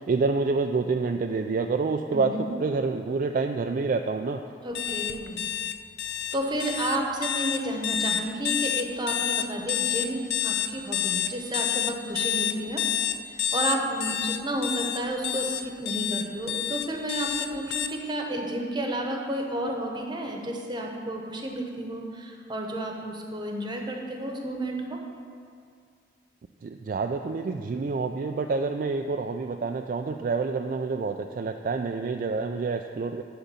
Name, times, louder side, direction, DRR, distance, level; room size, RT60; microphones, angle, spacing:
voice 1, 0.1-4.4 26.6-33.2, right 4 dB, 50° right, 5 dB, 0.3 m, -27 dB
voice 2, 2.1-2.4 4.6-5.5 6.3-12.8 13.3-25.0, right 1 dB, 25° right, 1 dB, 1.0 m, -31 dB
sound 1, 4.7-17.9, left 10 dB, 70° left, 0.5 m, -28 dB
11.5 x 3.9 x 7.0 m, 2.2 s
head